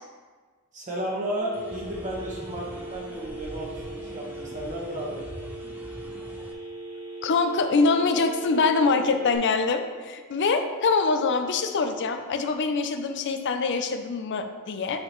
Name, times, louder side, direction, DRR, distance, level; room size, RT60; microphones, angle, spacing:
voice 1, 0.7-5.3, equal, 35° right, -3 dB, 1.3 m, -33 dB
Telephone, 1.4-9.4, right 2 dB, 80° right, 1.2 m, -39 dB
sound 1, 1.5-6.5, equal, 10° right, 0.5 m, -43 dB
voice 2, 7.2-15.0, left 4 dB, 55° left, 7 dB, 0.5 m, -24 dB
8.5 x 3.9 x 3.1 m, 1.5 s
head